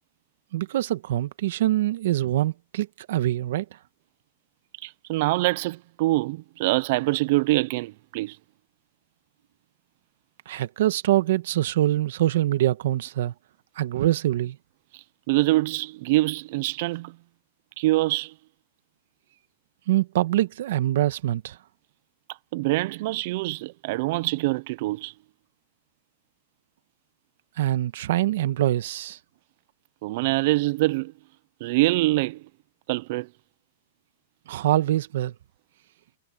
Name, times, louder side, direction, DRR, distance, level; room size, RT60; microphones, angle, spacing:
voice 1, 0.5-3.6 10.5-13.3 13.8-14.6 19.9-21.6 27.6-29.2 34.5-35.3, right 14 dB, 60° right, 1.4 m, -24 dB
voice 2, 4.8-8.4 15.3-17.2 17.8-18.3 22.5-25.1 30.0-31.1 31.6-32.4 32.9-33.3, right 20 dB, 45° right, 0.5 m, -24 dB
supercardioid pair, 165°, 0 cm